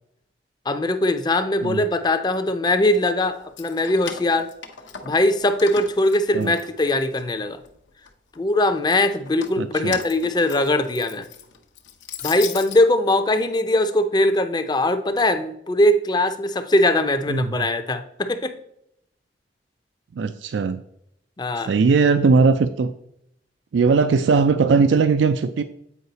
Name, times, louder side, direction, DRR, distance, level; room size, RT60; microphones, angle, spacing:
voice 1, 0.7-4.5 5.0-7.6 8.4-11.3 12.2-18.5 21.4-21.7, left 1 dB, 25° left, 9 dB, 0.5 m, -21 dB
Keys jangling, 3.4-5.3 5.6-7.2 7.6-8.4 9.1-12.8, left 7 dB, 85° left, 0.8 m, -37 dB
voice 2, 9.6-10.0 17.3-17.7 20.1-20.8 21.6-22.9 23.7-25.6, right 4 dB, 80° right, 10 dB, 0.4 m, -19 dB
8.2 x 4.7 x 4.0 m, 0.75 s
head